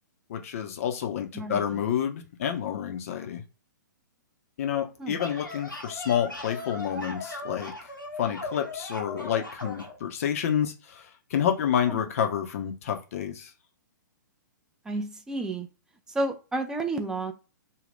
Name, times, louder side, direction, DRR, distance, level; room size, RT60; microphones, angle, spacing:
voice 1, 0.3-3.4 4.6-7.7 8.2-13.5, left 9 dB, 45° left, 0.7 m, -29 dB
voice 2, 1.3-1.8 5.0-5.2 11.9-12.1 14.8-15.7 16.1-17.3, right 2 dB, 5° right, 0.4 m, -31 dB
sound 1, 5.0-10.0, left 2 dB, 85° left, 0.9 m, -38 dB
2.6 x 2.3 x 3.5 m
figure-of-eight pair, 115°, 11 cm